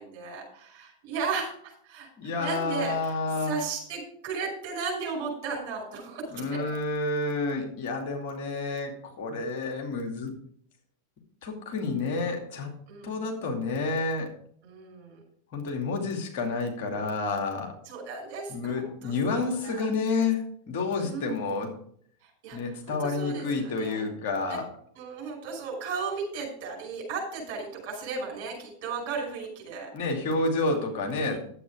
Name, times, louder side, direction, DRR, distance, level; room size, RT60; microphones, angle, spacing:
voice 1, 0.0-6.6 12.9-13.2 14.6-15.2 17.9-19.9 20.1-20.2 21.0-21.6 22.2-24.1 24.5-24.6 25.0-29.9 31.3-31.4, right 4 dB, 50° right, 0 dB, 5.6 m, -35 dB
voice 2, 2.2-3.5 6.3-10.3 11.4-12.7 13.0-14.3 15.5-17.7 18.5-21.7 22.5-24.7 29.9-31.4, left 3 dB, 50° left, 2 dB, 2.4 m, -29 dB
11.0 x 8.2 x 4.9 m, 0.62 s
figure-of-eight pair, 90°, 0 cm